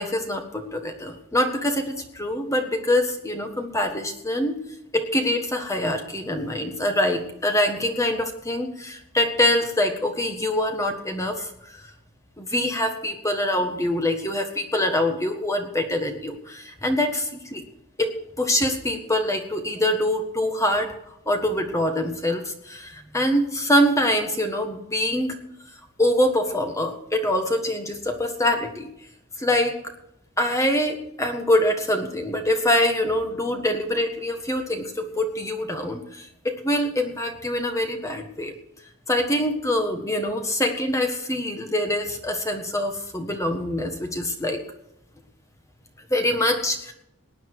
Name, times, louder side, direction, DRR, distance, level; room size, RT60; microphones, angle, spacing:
voice 1, 0.0-4.6 4.9-11.8 12.4-17.6 18.0-25.4 26.0-28.9 29.4-29.7 30.4-38.5 39.1-44.6 46.1-46.9, left 1 dB, 15° left, 5 dB, 1.5 m, -24 dB
19.0 x 10.0 x 4.8 m, 0.78 s
head